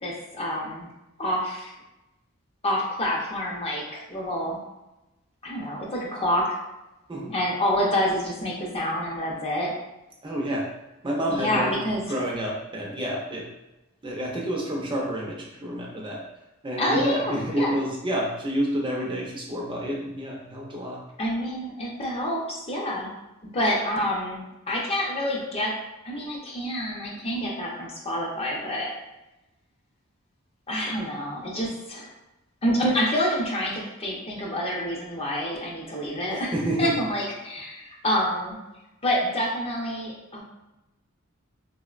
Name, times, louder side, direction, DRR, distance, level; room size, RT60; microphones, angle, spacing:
voice 1, 0.0-0.9 1.2-1.7 2.6-4.6 5.4-6.6 7.3-9.7 11.3-12.1 16.8-17.7 21.2-23.1 23.5-25.7 26.0-28.9 30.7-32.1 32.6-38.6 39.0-40.4, equal, 30° left, -3 dB, 0.5 m, -27 dB
voice 2, 10.2-10.7 11.0-11.8 12.1-13.5 14.0-16.2 16.6-21.0 36.5-37.0, right 1 dB, 25° right, -2 dB, 0.4 m, -29 dB
3.6 x 2.0 x 2.4 m, 0.99 s
head